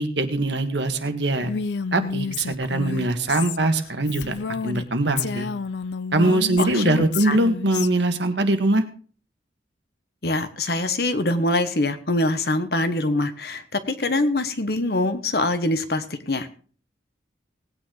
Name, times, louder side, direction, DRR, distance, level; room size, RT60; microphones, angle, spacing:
voice 1, 0.0-1.5 1.9-4.3 4.6-5.5 6.1-8.8, right 2 dB, 75° right, 8 dB, 1.6 m, -22 dB
Female speech woman speaking, 1.4-4.9 5.2-7.9, left 5 dB, 70° left, 0.5 m, -30 dB
voice 2, 10.2-16.5, left 2 dB, 55° left, 10 dB, 1.2 m, -24 dB
18.5 x 9.3 x 3.8 m, 0.42 s
head